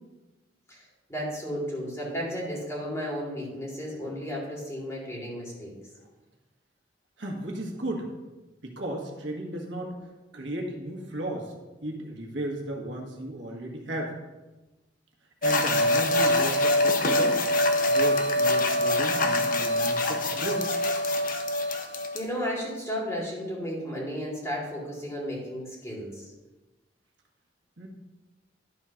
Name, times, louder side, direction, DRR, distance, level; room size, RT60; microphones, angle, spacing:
voice 1, 1.1-5.7 21.8-26.3, equal, 15° left, -5 dB, 2.5 m, -34 dB
voice 2, 7.2-8.1 8.6-9.9 10.3-11.5 11.8-14.1 15.4-20.7 27.8-27.9, right 1 dB, 80° right, 0 dB, 1.6 m, -35 dB
sound 1, 15.4-22.2, left 1 dB, 50° left, 0.8 m, -24 dB
11.5 x 3.8 x 5.8 m, 1.1 s
head